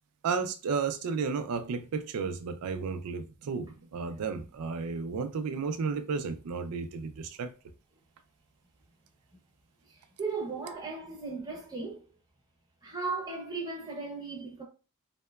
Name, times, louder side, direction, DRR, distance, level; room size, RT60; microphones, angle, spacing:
voice 1, 0.2-7.5, right 5 dB, 85° right, 0.4 m, -33 dB
voice 2, 10.2-12.0 12.8-14.6, right 4 dB, 15° right, 0.6 m, -36 dB
2.8 x 2.1 x 2.2 m
head